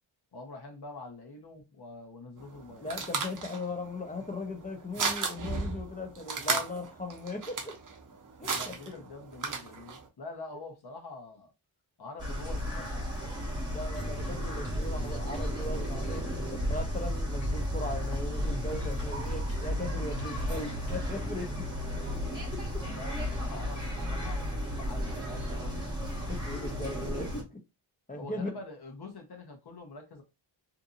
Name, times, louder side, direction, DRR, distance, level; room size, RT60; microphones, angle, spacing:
voice 1, 0.3-2.9 8.5-11.5 12.0-13.4 22.9-24.4 24.8-25.8 28.1-30.2, left 3 dB, 55° left, 1.0 m, -45 dB
sound 1, 2.4-10.1, right 4 dB, 45° right, 0.6 m, -35 dB
voice 2, 2.8-7.8 8.4-8.9 13.7-21.6 22.0-22.1 22.5-22.8 26.3-27.6 28.1-28.5, left 2 dB, 20° left, 0.5 m, -38 dB
sound 2, 12.2-27.4, equal, 10° right, 1.3 m, -33 dB
sound 3, 13.9-21.5, equal, 70° left, 1.5 m, -46 dB
2.7 x 2.6 x 2.5 m
wide cardioid pair, 135°, 46 cm